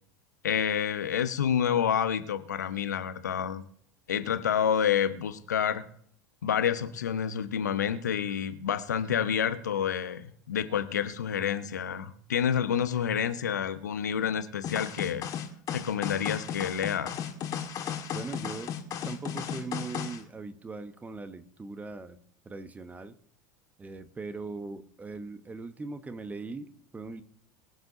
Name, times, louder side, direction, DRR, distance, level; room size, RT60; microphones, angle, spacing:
voice 1, 0.4-3.6 4.1-5.8 6.4-15.3 15.7-17.2, left 8 dB, 75° left, 10 dB, 1.0 m, -28 dB
sound 1, 14.6-20.2, left 8 dB, 40° left, 1.9 m, -35 dB
voice 2, 18.1-18.7 19.0-22.2 22.4-23.1 23.8-27.2, right 3 dB, 15° right, 10 dB, 1.1 m, -40 dB
23.0 x 7.9 x 2.9 m, 0.62 s
figure-of-eight pair, 80°, 9 cm